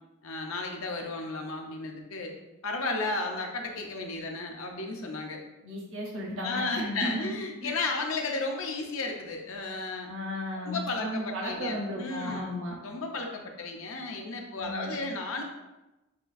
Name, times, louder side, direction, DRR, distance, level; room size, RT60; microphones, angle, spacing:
voice 1, 0.2-2.3 2.6-5.4 6.4-10.1 10.6-12.5 12.8-15.4, left 3 dB, 75° left, 2 dB, 0.6 m, -33 dB
voice 2, 5.6-7.3 7.6-7.7 10.1-12.8 14.6-14.9, equal, 65° right, -1 dB, 0.8 m, -34 dB
6.7 x 2.4 x 2.6 m, 1.0 s
head